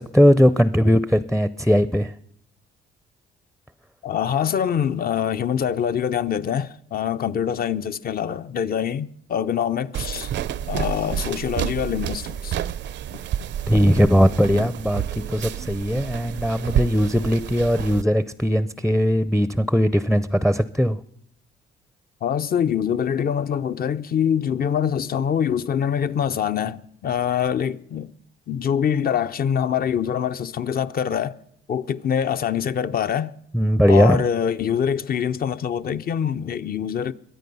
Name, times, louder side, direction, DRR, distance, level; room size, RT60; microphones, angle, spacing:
voice 1, 0.0-2.1 13.7-21.0 33.5-34.2, equal, ahead, 0.5 m, -19 dB
voice 2, 4.0-10.3 10.7-12.6 14.5-14.7 22.2-28.1 28.5-31.4 31.7-33.3 33.9-37.1, left 8 dB, 50° left, 0.6 m, -24 dB
sound 1, 9.9-18.0, right 10 dB, 65° right, 0.5 m, -29 dB
22.5 x 9.2 x 5.5 m
cardioid pair, 90°, 20 cm